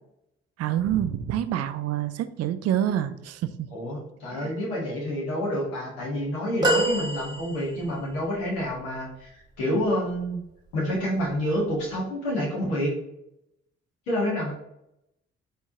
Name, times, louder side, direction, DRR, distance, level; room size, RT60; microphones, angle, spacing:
voice 1, 0.6-3.7 4.3-4.6, right 10 dB, 55° right, 12 dB, 0.4 m, -27 dB
voice 2, 3.7-10.4 10.7-12.9 14.1-14.5, equal, 80° left, -4 dB, 1.5 m, -28 dB
sound 1, 6.6-8.0 8.8-8.9, right 2 dB, 15° right, 1.3 m, -26 dB
4.5 x 3.5 x 2.8 m, 0.81 s
hypercardioid pair, 40°, 31 cm